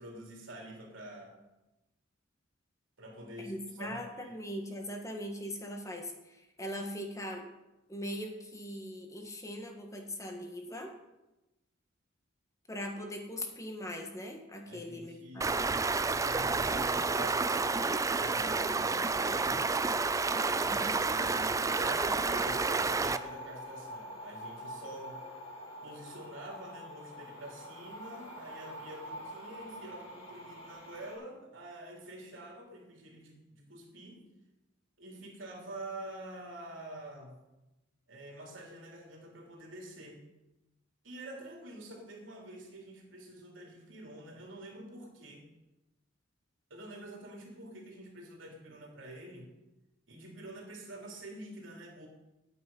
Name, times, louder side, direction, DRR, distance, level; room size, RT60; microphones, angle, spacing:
voice 1, 0.0-1.3 3.0-4.4 14.6-15.6 16.0-17.8 18.1-19.7 20.6-25.2 25.8-34.2 35.0-37.4 38.1-40.2 41.0-45.4 46.7-49.5 50.1-52.1, right 1 dB, 75° right, -1 dB, 3.3 m, -47 dB
voice 2, 3.4-7.4 7.9-10.9 12.7-15.6, equal, 15° left, 3 dB, 1.7 m, -40 dB
Stream, 15.4-23.2, right 3 dB, 15° right, 0.4 m, -30 dB
sound 1, 16.9-31.2, equal, 70° left, 5.1 m, -47 dB
11.5 x 8.9 x 5.5 m, 0.99 s
head